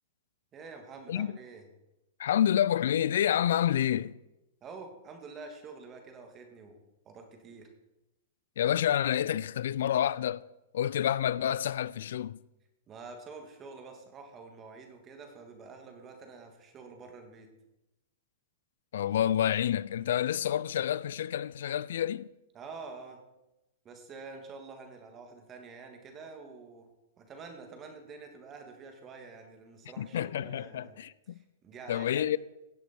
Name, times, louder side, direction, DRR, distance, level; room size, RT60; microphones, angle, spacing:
voice 1, 0.5-1.6 4.6-6.8 7.0-7.7 12.9-17.5 22.5-23.2 23.8-26.9 27.2-31.0 31.3-32.4, right 4 dB, 30° right, 2.7 m, -47 dB
voice 2, 2.2-4.1 8.6-10.4 10.7-12.4 18.9-22.3 30.0-31.4 31.9-32.4, left 10 dB, 70° left, 0.4 m, -28 dB
17.0 x 7.9 x 4.7 m
hypercardioid pair, 110°, 0 cm